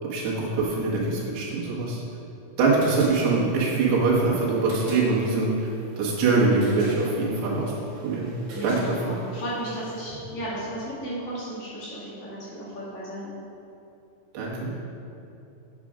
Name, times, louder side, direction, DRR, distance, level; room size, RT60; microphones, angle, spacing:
voice 1, 0.0-2.0 2.6-5.7 6.0-7.7 8.0-8.3 8.6-9.2 14.3-14.8, right 3 dB, 75° right, -5 dB, 3.5 m, -23 dB
Transfer Room Pump (Loud Clicky Reverb Noisy Heavy), 2.6-10.0, right 2 dB, 60° right, 3.0 m, -42 dB
voice 2, 8.5-13.3, right 1 dB, 50° left, -8 dB, 2.7 m, -34 dB
8.6 x 7.4 x 5.0 m, 2.8 s
omnidirectional pair, 4.8 m